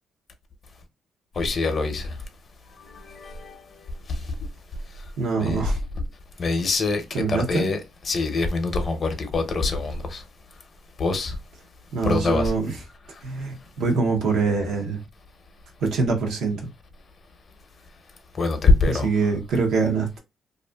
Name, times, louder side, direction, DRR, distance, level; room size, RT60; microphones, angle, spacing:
voice 1, 1.4-2.1 2.9-3.6 5.4-5.6 6.4-7.8 8.0-10.2 11.0-11.3 12.0-12.5 18.4-19.1, left 3 dB, 45° left, 0.6 m, -24 dB
voice 2, 5.2-5.8 7.1-7.7 11.9-12.7 13.2-15.0 15.8-16.6 18.8-20.2, right 4 dB, 80° right, 0.7 m, -24 dB
2.5 x 2.4 x 2.2 m
cardioid pair, 90°, 0 cm